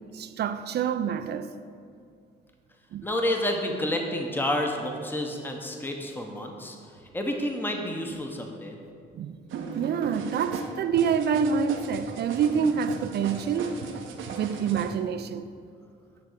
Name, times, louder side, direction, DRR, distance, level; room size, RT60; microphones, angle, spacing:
voice 1, 0.1-1.5 2.9-3.1 9.1-9.4 9.8-13.8 14.4-15.5, right 7 dB, 55° right, 0.4 m, -27 dB
voice 2, 3.0-6.8 7.1-8.8, left 1 dB, 10° left, 0.9 m, -29 dB
sound 1, 9.5-14.9, right 5 dB, 80° right, 0.8 m, -37 dB
8.9 x 3.5 x 6.6 m
cardioid pair, 90°, 20 cm